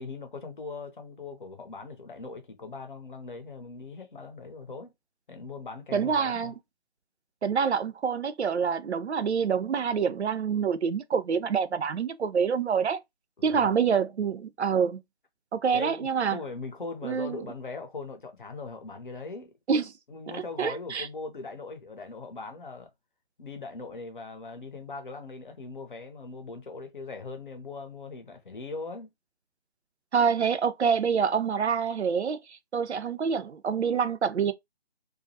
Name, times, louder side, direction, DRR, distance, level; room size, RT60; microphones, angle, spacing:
voice 1, 0.0-4.9 5.3-6.5 13.4-13.7 15.7-19.5 20.1-22.9 23.4-29.1, left 3 dB, 50° left, 0.7 m, -40 dB
voice 2, 5.9-6.5 7.4-13.0 13.4-15.0 15.5-16.4 17.0-17.4 19.7-19.9 20.3-21.1 30.1-34.5, right 6 dB, 80° right, 0.5 m, -26 dB
2.3 x 2.0 x 2.7 m
figure-of-eight pair, 155°, 33 cm